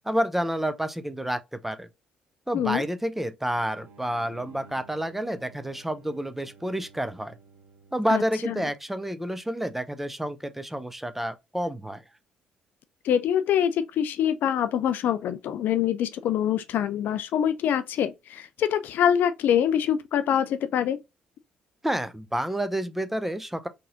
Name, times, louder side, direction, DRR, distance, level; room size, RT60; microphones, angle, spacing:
voice 1, 0.0-1.9 2.5-7.3 7.9-12.0 21.8-23.7, right 1 dB, 5° right, 0.5 m, -29 dB
sound 1, 3.5-8.9, right 4 dB, 50° right, 0.8 m, -53 dB
voice 2, 8.1-8.6 13.0-21.0, left 9 dB, 50° left, 0.3 m, -25 dB
3.8 x 2.8 x 2.5 m
figure-of-eight pair, 50°, 4 cm